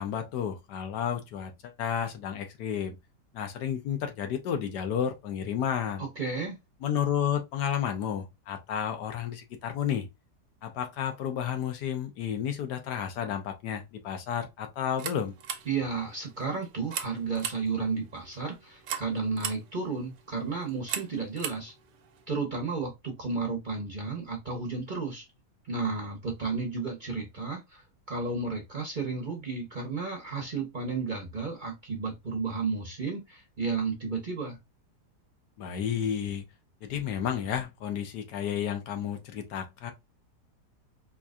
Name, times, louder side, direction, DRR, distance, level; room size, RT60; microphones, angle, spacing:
voice 1, 0.0-2.9 3.3-6.0 6.8-10.1 10.6-15.3 35.6-36.4 36.8-39.9, left 9 dB, 80° left, 1.4 m, -31 dB
voice 2, 6.0-6.6 15.7-21.7 22.3-25.2 25.6-34.6, right 4 dB, 40° right, 0.8 m, -33 dB
sound 1, 14.8-22.3, right 8 dB, 85° right, 1.3 m, -40 dB
4.5 x 2.8 x 2.4 m
omnidirectional pair, 1.8 m